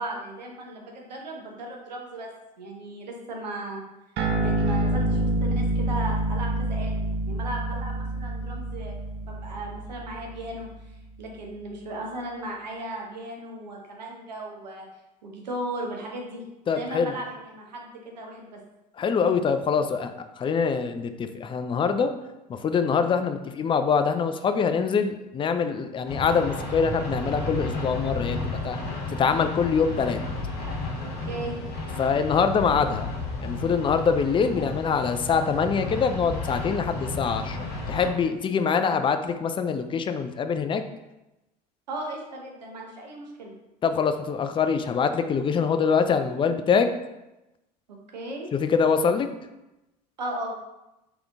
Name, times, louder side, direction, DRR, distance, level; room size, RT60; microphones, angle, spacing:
voice 1, 0.0-2.3 2.6-3.8 4.4-9.0 9.2-10.7 11.2-14.9 15.2-16.4 16.7-18.6 31.0-31.6 41.9-43.5 47.9-48.5 50.2-50.5, right 1 dB, 90° right, 0 dB, 0.9 m, -36 dB
sound 1, 4.2-11.0, right 1 dB, 55° right, 0.9 m, -27 dB
voice 2, 16.7-17.1 19.0-22.1 22.5-28.8 29.1-30.2 32.0-33.1 33.4-37.6 37.9-40.8 43.8-46.9 48.5-49.3, left 6 dB, 25° left, 8 dB, 0.4 m, -24 dB
sound 2, 26.1-38.1, left 2 dB, 50° left, 1.3 m, -32 dB
3.6 x 3.5 x 3.5 m, 0.97 s
hypercardioid pair, 75°, 21 cm